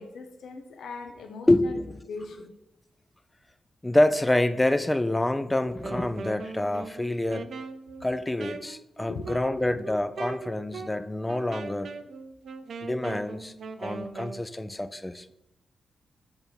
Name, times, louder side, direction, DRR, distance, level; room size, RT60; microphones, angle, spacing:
voice 1, 0.0-1.8 2.1-2.5 9.1-9.8, left 3 dB, 80° left, 6 dB, 0.6 m, -40 dB
voice 2, 1.5-2.0 3.8-7.5 8.0-11.9 12.8-13.5 13.8-15.3, left 1 dB, 15° left, 12 dB, 0.4 m, -26 dB
Wind instrument woodwind instrument, 5.7-14.4, right 4 dB, 70° right, 0.4 m, -40 dB
6.7 x 3.5 x 4.4 m, 0.87 s
cardioid pair, 80°, 0 cm